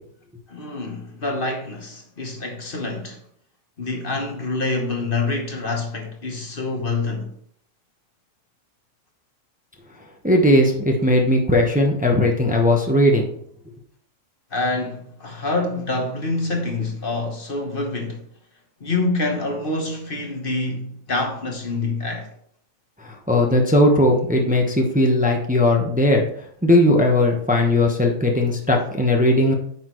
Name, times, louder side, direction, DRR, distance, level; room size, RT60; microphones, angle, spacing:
voice 1, 0.5-3.2 3.8-7.3 14.5-18.2 18.8-22.3, left 2 dB, 45° left, 1.3 m, -26 dB
voice 2, 10.2-13.3 23.0-26.3 26.6-29.5, left 1 dB, 5° right, 0.9 m, -18 dB
9.2 x 6.1 x 3.1 m
omnidirectional pair, 1.3 m